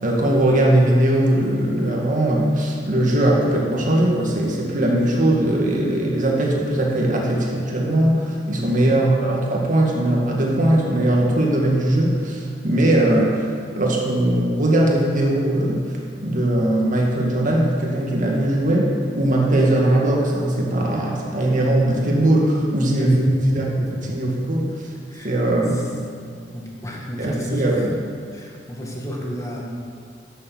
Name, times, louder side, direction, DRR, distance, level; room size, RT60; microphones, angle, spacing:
voice 1, 0.0-13.5 13.7-23.6 24.1-24.7 25.2-25.8 27.2-27.9, right 1 dB, 45° right, -2 dB, 2.0 m, -20 dB
voice 2, 22.9-23.2 23.8-24.1 25.1-25.4 25.7-25.9 26.5-27.9 28.3-29.6, equal, 20° left, -2 dB, 1.6 m, -31 dB
11.5 x 7.2 x 6.1 m, 2.1 s
head